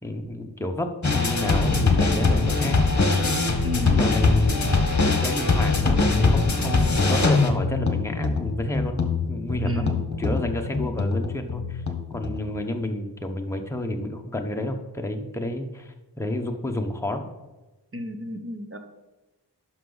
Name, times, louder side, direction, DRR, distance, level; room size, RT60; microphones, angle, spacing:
voice 1, 0.0-2.8 3.2-4.6 5.1-9.8 10.2-11.8 12.1-17.3, left 1 dB, 5° left, 3 dB, 0.9 m, -30 dB
sound 1, 1.0-12.4, left 3 dB, 40° left, 1.2 m, -22 dB
voice 2, 3.6-4.0 4.5-5.0 9.6-10.1 10.8-11.0 17.9-18.8, left 1 dB, 30° right, 7 dB, 1.0 m, -34 dB
11.0 x 5.9 x 4.0 m, 1.1 s
wide cardioid pair, 60°, 43 cm